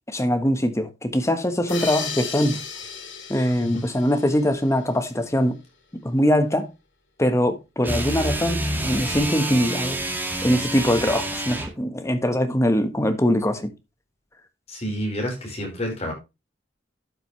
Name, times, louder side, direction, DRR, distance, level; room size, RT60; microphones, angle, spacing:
voice 1, 0.1-2.6 3.3-5.6 5.9-6.7 7.2-10.0 10.4-13.7, equal, 15° left, 1.3 m, -22 dB
sound 1, 1.7-5.0, left 5 dB, 75° left, 2.6 m, -35 dB
sound 2, 7.8-11.8, right 1 dB, 10° right, 2.0 m, -28 dB
voice 2, 14.7-16.1, equal, 35° left, 4.7 m, -29 dB
12.0 x 7.0 x 3.2 m
head